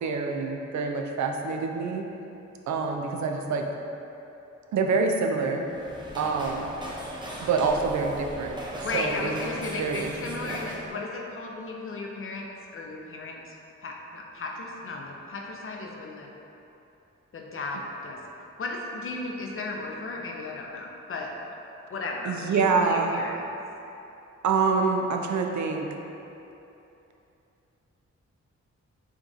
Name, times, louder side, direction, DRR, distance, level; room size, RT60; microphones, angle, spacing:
voice 1, 0.0-2.1 2.7-3.6 4.7-5.7 6.2-6.7 7.4-9.4 9.8-10.1 10.4-10.6 22.2-23.2 24.4-25.9, right 4 dB, 70° right, 3 dB, 0.5 m, -26 dB
sound 1, 5.6-10.9, equal, 15° right, 0.6 m, -38 dB
voice 2, 8.8-13.6 13.8-16.3 17.3-18.2 18.6-21.3 21.9-23.4, left 3 dB, 45° left, 0 dB, 0.6 m, -35 dB
7.1 x 2.4 x 2.7 m, 2.9 s
wide cardioid pair, 95°, 29 cm